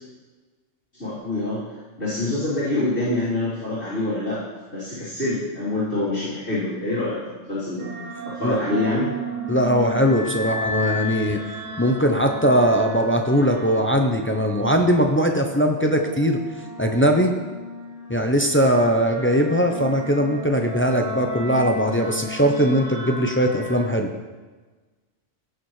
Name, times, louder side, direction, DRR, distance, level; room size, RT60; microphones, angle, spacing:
voice 1, 0.9-1.6 2.0-4.4 4.7-7.9 8.2-9.1, left 2 dB, 60° left, -14 dB, 3.8 m, -26 dB
sound 1, 7.8-23.9, right 1 dB, 35° right, 1.2 m, -34 dB
voice 2, 9.5-11.4 11.8-16.4 16.8-17.3 18.1-24.1, equal, 15° left, 3 dB, 0.5 m, -20 dB
17.5 x 6.8 x 3.2 m, 1.3 s
omnidirectional pair, 1.3 m